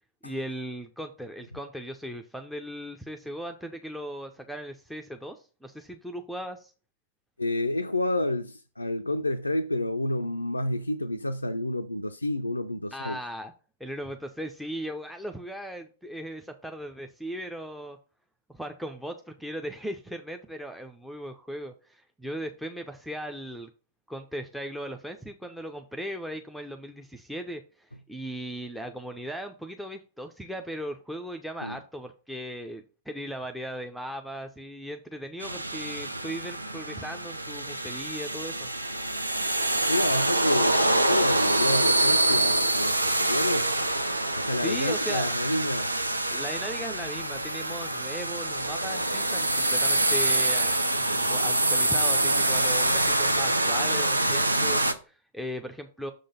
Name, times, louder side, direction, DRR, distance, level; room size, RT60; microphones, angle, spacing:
voice 1, 0.2-6.7 12.9-13.5 13.8-18.0 18.5-23.7 24.1-38.7 44.6-45.3 46.3-56.1, equal, ahead, 0.5 m, -38 dB
voice 2, 7.4-13.2 31.6-31.8 39.9-43.7 44.4-45.9, left 1 dB, 85° left, 0.4 m, -29 dB
sound 1, 35.4-54.9, right 1 dB, 85° right, 0.6 m, -25 dB
6.5 x 3.8 x 5.2 m
figure-of-eight pair, 105°, 0 cm